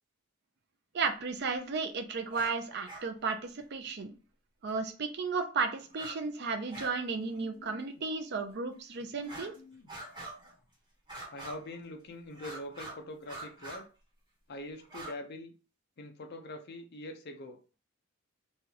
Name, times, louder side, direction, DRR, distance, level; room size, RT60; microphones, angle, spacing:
voice 1, 0.9-4.1 4.6-9.5, right 4 dB, 50° right, 5 dB, 0.5 m, -34 dB
sound 1, 2.3-2.5 2.9-3.0 4.7-4.8 5.9-6.2 6.4-7.0 7.3-7.4 8.0-8.1 9.2-9.6 9.9-10.5 11.1-11.8 12.3-13.0 13.2-13.8 14.8-15.1, right 2 dB, 20° right, 1.1 m, -45 dB
voice 2, 7.1-8.0 9.0-9.9 11.3-13.9 14.5-15.5 16.0-17.8, left 1 dB, 50° left, 4 dB, 0.5 m, -45 dB
3.1 x 2.3 x 2.8 m, 0.36 s
head